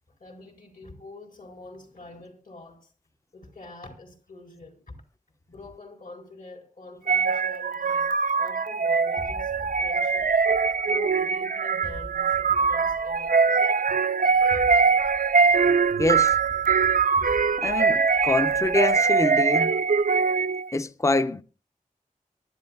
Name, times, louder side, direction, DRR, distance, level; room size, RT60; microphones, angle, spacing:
voice 1, 0.2-2.9 3.3-5.0 5.5-8.1 8.4-10.3 10.9-13.6, left 2 dB, 70° left, 4.5 m, -45 dB
sound 1, 7.1-20.7, right 5 dB, 65° right, 0.5 m, -22 dB
sound 2, 9.2-11.3 11.8-13.6 14.3-19.4, left 1 dB, 35° left, 1.4 m, -44 dB
voice 2, 16.0-16.3 17.6-19.7 20.7-21.4, left 2 dB, 20° left, 0.6 m, -25 dB
23.0 x 12.0 x 2.3 m
wide cardioid pair, 70°, 15 cm